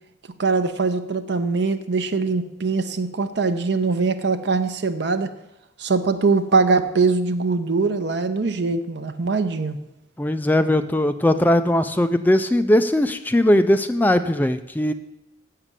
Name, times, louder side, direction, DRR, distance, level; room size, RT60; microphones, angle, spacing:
voice 1, 0.4-5.3 5.8-9.8, right 4 dB, 65° right, 9 dB, 0.7 m, -22 dB
voice 2, 10.2-14.9, left 1 dB, 10° left, 10 dB, 0.3 m, -19 dB
7.3 x 6.7 x 7.3 m, 0.91 s
head